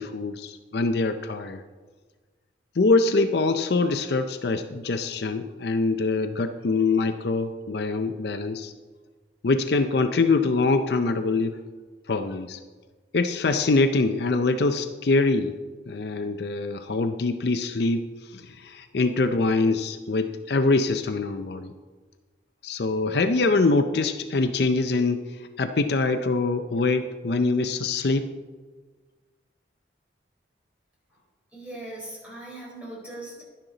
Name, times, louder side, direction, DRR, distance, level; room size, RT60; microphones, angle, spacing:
voice 1, 0.0-1.6 2.8-8.7 9.4-11.6 12.1-12.6 13.1-15.5 15.9-21.7 22.6-28.3, left 3 dB, 60° left, 8 dB, 0.5 m, -24 dB
voice 2, 31.5-33.4, right 1 dB, 5° right, -5 dB, 4.0 m, -39 dB
11.5 x 10.0 x 3.9 m, 1.4 s
head